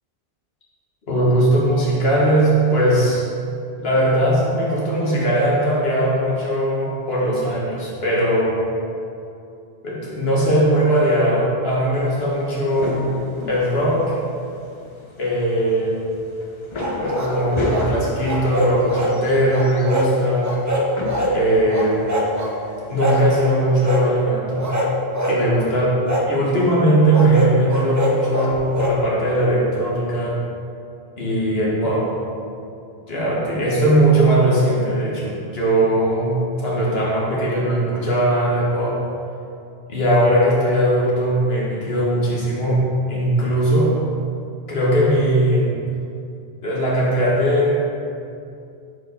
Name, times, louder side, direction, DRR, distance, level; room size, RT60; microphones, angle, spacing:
voice 1, 1.1-3.2 3.8-8.6 9.8-13.1 13.5-14.2 15.2-16.1 17.0-20.6 21.3-22.2 22.9-24.8 25.3-25.9 26.3-30.4 31.2-32.1 33.1-39.0 39.9-42.8 43.1-43.9 44.7-45.7 46.6-47.8, right 1 dB, 70° left, -5 dB, 1.6 m, -19 dB
sound 1, 11.9-23.4, left 2 dB, 30° left, 0.6 m, -33 dB
sound 2, 16.8-17.9 18.2-19.2 19.5-20.1 20.4-21.4 21.7-22.5 23.0-23.3 23.8-24.1 24.6-25.4 26.0-26.3 27.1-29.0, equal, 25° right, 0.4 m, -23 dB
4.7 x 4.5 x 5.1 m, 2.5 s
omnidirectional pair, 1.1 m